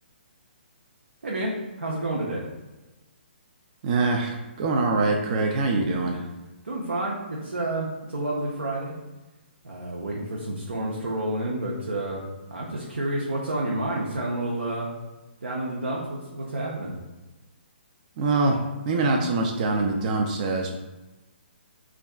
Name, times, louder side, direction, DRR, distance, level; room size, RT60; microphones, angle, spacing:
voice 1, 1.2-2.4 6.6-9.0 9.6-14.9 15.4-17.0, right 1 dB, 85° right, -4 dB, 0.6 m, -30 dB
voice 2, 3.8-6.2 18.2-18.6 18.8-20.7, right 3 dB, 40° right, 1 dB, 0.3 m, -24 dB
3.3 x 2.3 x 2.3 m, 1.1 s
hypercardioid pair, 140°, 6 cm